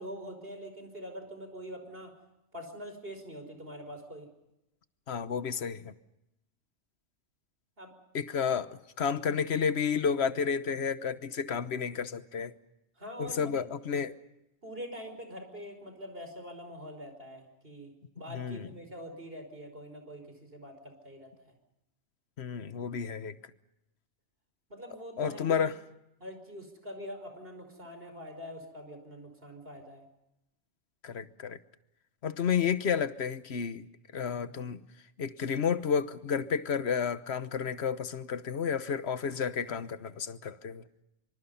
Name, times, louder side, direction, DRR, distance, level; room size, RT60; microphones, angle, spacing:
voice 1, 0.0-2.1 2.5-4.3 7.8-8.0 13.0-13.6 14.6-21.3 24.7-25.6 26.2-30.0, equal, 45° right, 5.6 m, -44 dB
voice 2, 5.1-5.9 8.1-12.5 13.2-14.2 18.3-18.6 22.4-23.4 25.2-25.7 31.0-31.6 32.2-33.9 34.1-34.8 35.2-40.8, left 6 dB, 55° left, 1.3 m, -31 dB
25.5 x 25.5 x 5.6 m
omnidirectional pair, 1.4 m